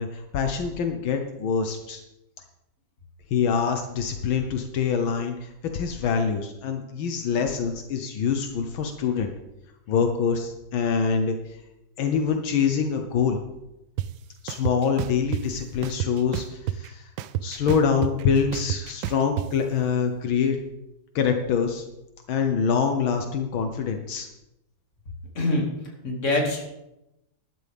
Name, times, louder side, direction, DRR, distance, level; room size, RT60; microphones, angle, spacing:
voice 1, 0.0-2.0 3.3-9.3 9.9-11.4 12.0-13.4 14.4-17.1 17.4-20.6 21.2-21.8 22.3-24.3, left 6 dB, 80° left, 5 dB, 1.8 m, -25 dB
sound 1, 14.0-14.1 14.5-15.4 15.8-16.9 17.2-19.5, right 12 dB, 80° right, 1.3 m, -29 dB
voice 2, 26.0-26.7, left 2 dB, 35° left, 0 dB, 2.6 m, -24 dB
13.0 x 12.0 x 3.5 m, 0.91 s
omnidirectional pair, 2.2 m